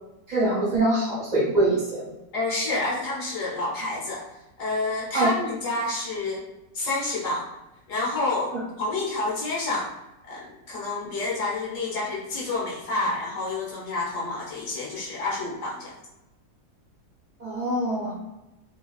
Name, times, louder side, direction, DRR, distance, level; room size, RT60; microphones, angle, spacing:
voice 1, 0.3-2.0 5.1-5.3 8.5-8.6 17.4-18.2, right 1 dB, 40° right, -6 dB, 0.6 m, -24 dB
voice 2, 2.3-4.2 4.6-6.4 6.7-7.5 7.9-9.9 10.3-15.9, left 2 dB, 55° left, -5 dB, 1.1 m, -29 dB
3.1 x 2.3 x 2.3 m, 0.95 s
omnidirectional pair, 1.9 m